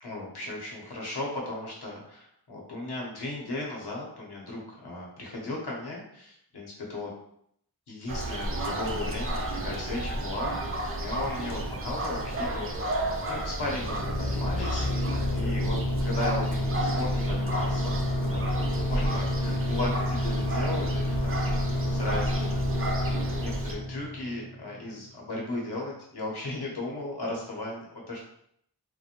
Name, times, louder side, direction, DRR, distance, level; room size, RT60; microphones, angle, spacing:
voice 1, 0.0-7.1 7.9-12.7 13.3-15.1 15.3-18.4 18.9-28.2, left 2 dB, 80° left, -2 dB, 0.9 m, -36 dB
sound 1, 8.1-23.7, right 1 dB, 35° right, 0.4 m, -33 dB
sound 2, 13.6-25.0, left 1 dB, 55° left, 0.6 m, -29 dB
2.4 x 2.1 x 2.8 m, 0.70 s
wide cardioid pair, 80°, 39 cm